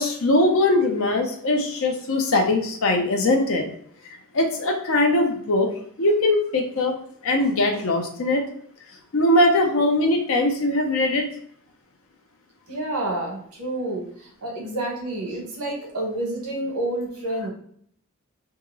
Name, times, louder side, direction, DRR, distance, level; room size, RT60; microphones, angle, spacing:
voice 1, 0.0-3.7 4.0-5.7 6.0-6.9 7.2-8.4 9.1-11.3, left 2 dB, 65° left, 3 dB, 0.6 m, -21 dB
voice 2, 12.7-17.5, right 1 dB, 85° right, 0 dB, 1.2 m, -29 dB
2.9 x 2.9 x 3.7 m, 0.63 s
head